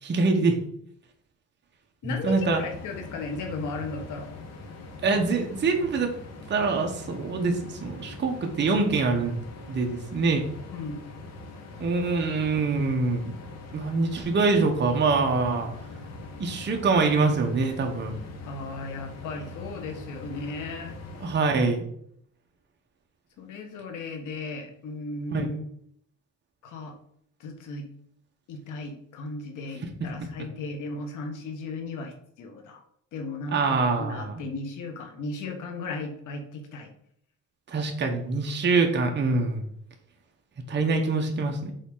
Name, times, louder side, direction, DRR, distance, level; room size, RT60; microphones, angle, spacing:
voice 1, 0.0-0.6 2.2-2.6 5.0-6.1 6.5-9.4 9.7-10.4 11.8-13.3 13.7-15.7 16.4-18.2 21.2-21.8 25.3-25.5 33.5-34.4 37.7-39.6 40.7-41.7, right 3 dB, 35° right, 2 dB, 1.1 m, -24 dB
voice 2, 2.0-4.3 10.7-11.0 18.5-21.0 23.4-25.7 26.6-26.9 27.4-27.9 28.5-32.8 33.1-36.9, left 3 dB, 85° left, 4 dB, 1.4 m, -36 dB
sound 1, 2.2-21.3, left 2 dB, 55° left, 1.2 m, -42 dB
6.9 x 4.2 x 3.8 m, 0.67 s
cardioid pair, 125°, 30 cm